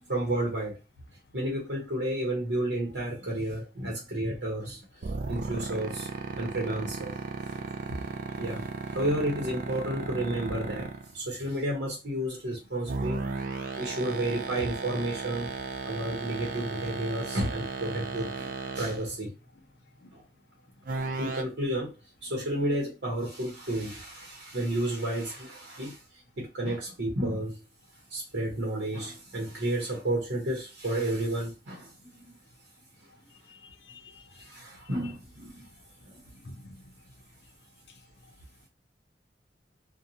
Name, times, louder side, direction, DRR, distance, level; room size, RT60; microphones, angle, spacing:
voice 1, 0.1-0.8 1.3-4.8 5.3-6.1 6.4-7.1 8.4-10.9 11.1-13.2 13.8-15.5 15.8-19.3 20.1-20.2 20.9-22.0 22.2-26.0 26.4-27.6 28.1-31.9 32.2-32.3 34.4-35.7 36.1-36.2, right 1 dB, 90° right, 0.9 m, -31 dB
sound 1, 5.0-11.1 12.9-19.1 20.9-21.4, right 4 dB, 50° right, 0.3 m, -34 dB
voice 2, 33.3-34.5 36.3-36.8, left 2 dB, 70° left, 0.5 m, -50 dB
2.6 x 2.2 x 2.7 m
head